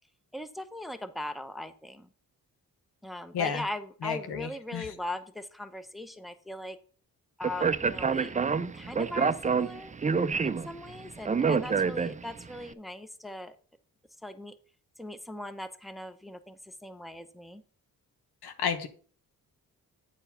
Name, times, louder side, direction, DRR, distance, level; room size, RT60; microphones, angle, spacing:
voice 1, 0.3-2.1 3.0-6.8 7.4-9.9 10.4-13.6 14.2-14.5 15.0-17.6, left 1 dB, ahead, 11 dB, 0.8 m, -40 dB
voice 2, 4.0-4.8 18.4-18.9, left 6 dB, 90° left, 8 dB, 1.2 m, -31 dB
Speech, 7.4-12.5, right 5 dB, 20° right, 0.5 m, -28 dB
9.1 x 4.6 x 5.6 m, 0.42 s
cardioid pair, 65°, 38 cm